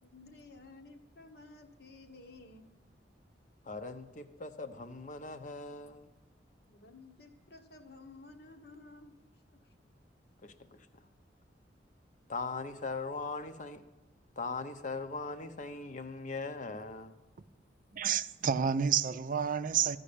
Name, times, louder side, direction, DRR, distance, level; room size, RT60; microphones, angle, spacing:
voice 1, 0.0-2.7 6.7-9.1, left 3 dB, 65° left, 1.2 m, -53 dB
voice 2, 3.7-6.1 10.4-10.8 12.3-13.8 14.4-17.1, left 3 dB, 45° left, 0.8 m, -40 dB
voice 3, 17.9-20.0, right 7 dB, 50° right, 0.4 m, -29 dB
14.0 x 5.3 x 8.5 m
head